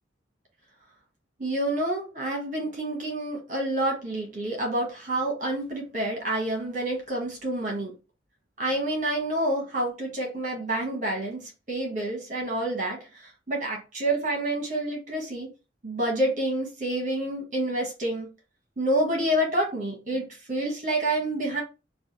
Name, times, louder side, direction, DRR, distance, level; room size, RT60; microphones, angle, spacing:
voice 1, 1.4-7.9 8.6-13.0 13.5-15.5 15.8-18.3 18.8-21.6, right 1 dB, 45° right, 1.2 m, -28 dB
3.3 x 2.4 x 2.8 m
head